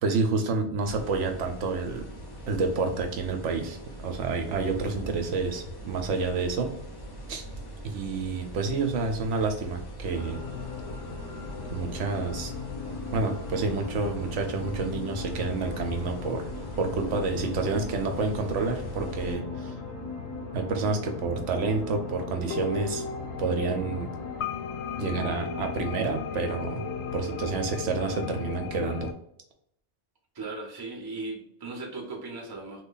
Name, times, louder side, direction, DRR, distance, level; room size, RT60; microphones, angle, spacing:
voice 1, 0.0-2.1 2.5-6.7 7.3-7.4 7.8-10.4 11.7-12.5 13.1-16.4 16.8-19.7 20.5-23.0 23.4-24.1 25.0-26.8 27.1-29.1, right 4 dB, 80° right, 4 dB, 0.9 m, -29 dB
sound 1, 0.8-19.4, right 1 dB, 30° left, 0.4 m, -41 dB
sound 2, 10.1-29.1, left 6 dB, 70° left, 0.8 m, -37 dB
sound 3, 10.1-24.4, equal, 10° left, 0.8 m, -43 dB
voice 2, 30.3-32.8, right 3 dB, 25° right, -1 dB, 0.7 m, -37 dB
3.1 x 2.2 x 3.8 m, 0.74 s
omnidirectional pair, 1.2 m